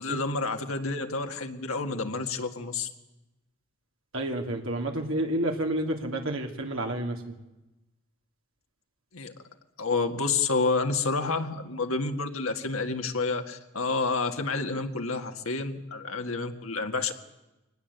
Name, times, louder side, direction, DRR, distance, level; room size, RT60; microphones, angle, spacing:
voice 1, 0.0-2.9 9.1-9.3 9.8-17.1, left 3 dB, 85° left, 5 dB, 2.0 m, -29 dB
voice 2, 4.1-7.3, right 1 dB, 75° right, 2 dB, 2.8 m, -30 dB
23.5 x 19.5 x 8.2 m, 1.0 s
head